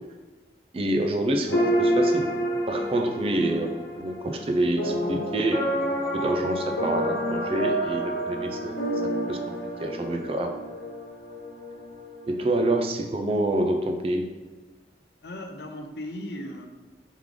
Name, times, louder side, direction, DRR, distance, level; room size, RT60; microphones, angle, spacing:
voice 1, 0.7-2.3 2.7-5.6 6.1-8.8 9.3-9.4 9.8-10.5 12.3-14.3, right 1 dB, 35° right, 5 dB, 0.4 m, -27 dB
sound 1, 1.5-12.5, right 1 dB, 85° left, 1.1 m, -28 dB
voice 2, 15.2-16.7, left 1 dB, 70° left, 4 dB, 0.5 m, -37 dB
3.6 x 3.2 x 3.6 m, 1.2 s
head